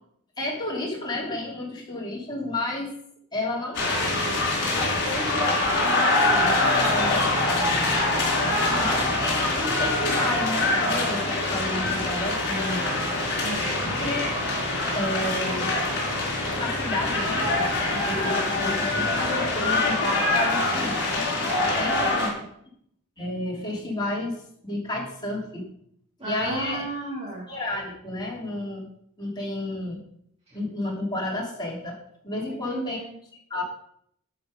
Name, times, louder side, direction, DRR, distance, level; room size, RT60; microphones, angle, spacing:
voice 1, 0.4-2.9 3.3-4.3 5.0-7.7 8.8-12.9 14.0-14.2 14.9-15.7 16.5-17.5 17.8-21.2 21.8-22.3 23.2-25.7 26.2-26.8 27.5-28.9 29.2-30.0 30.5-33.0 33.5-33.6, left 1 dB, 20° left, -4 dB, 3.2 m, -31 dB
sound 1, 3.7-22.3, left 2 dB, 55° left, 4.2 m, -24 dB
Aircraft, 6.2-19.7, right 1 dB, 10° right, 3.9 m, -39 dB
voice 2, 6.9-7.3 8.4-9.1 13.4-13.9 21.5-22.4 26.2-27.5 30.5-30.6 32.5-33.1, right 2 dB, 25° right, -8 dB, 3.1 m, -35 dB
12.0 x 5.7 x 5.3 m, 0.67 s
head